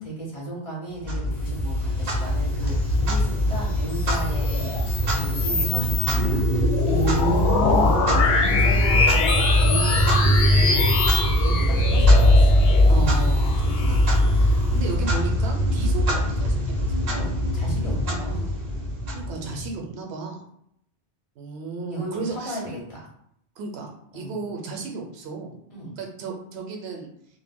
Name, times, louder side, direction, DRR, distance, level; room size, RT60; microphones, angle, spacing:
voice 1, 0.0-4.8 5.1-6.5 7.4-9.3 9.6-11.0 11.2-12.6 13.8-14.0 17.1-18.5 21.9-23.1 24.1-24.4 25.7-26.0, right 1 dB, 35° left, -4 dB, 0.7 m, -35 dB
Clock, 1.0-19.8, left 1 dB, 50° right, 0.5 m, -21 dB
sound 1, 3.7-14.6, left 3 dB, 70° left, 0.8 m, -25 dB
voice 2, 6.8-8.0 12.9-17.2 19.1-20.4 21.4-22.6 23.6-25.5 26.0-27.1, right 3 dB, 80° right, 1 dB, 0.8 m, -33 dB
2.1 x 2.1 x 3.4 m, 0.73 s
omnidirectional pair, 1.1 m